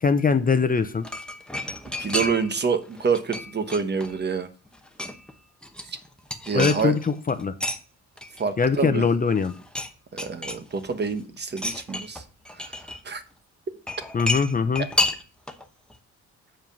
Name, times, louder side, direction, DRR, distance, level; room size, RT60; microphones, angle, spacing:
voice 1, 0.0-1.1 6.5-7.5 8.6-9.5 14.1-14.9, left 5 dB, 30° left, 10 dB, 0.7 m, -22 dB
sound 1, 0.8-2.6 2.9-4.3 4.7-5.3 5.6-7.8 8.2-9.1 9.3-9.9 10.2-11.1 11.5-13.0 13.9-15.6 15.9-16.0, left 2 dB, 5° left, 1.0 m, -31 dB
voice 2, 2.0-4.5 6.5-6.9 8.4-9.1 10.1-12.2 12.6-12.8 13.0-13.2, right 5 dB, 35° right, 9 dB, 1.1 m, -27 dB
7.4 x 4.9 x 5.3 m, 0.36 s
cardioid pair, 90°, 30 cm